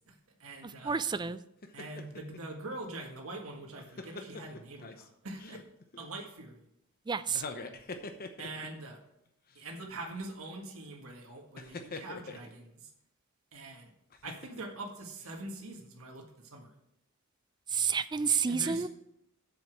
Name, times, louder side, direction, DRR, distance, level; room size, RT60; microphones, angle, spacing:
voice 1, 0.1-1.0 1.7-5.6 6.0-6.6 8.4-9.0 9.5-12.9 13.5-13.9 14.2-16.7 18.5-18.9, right 2 dB, 70° right, 1 dB, 1.7 m, -43 dB
voice 2, 0.6-1.4 7.1-7.4 17.7-18.9, right 6 dB, 20° right, 15 dB, 0.3 m, -30 dB
sound 1, 1.6-2.4 3.5-5.1 5.4-6.0 7.3-8.8 9.5-9.6 11.6-12.5 14.1-14.8 15.2-15.3, left 3 dB, 45° left, 0.9 m, -44 dB
7.8 x 7.1 x 6.3 m, 0.80 s
head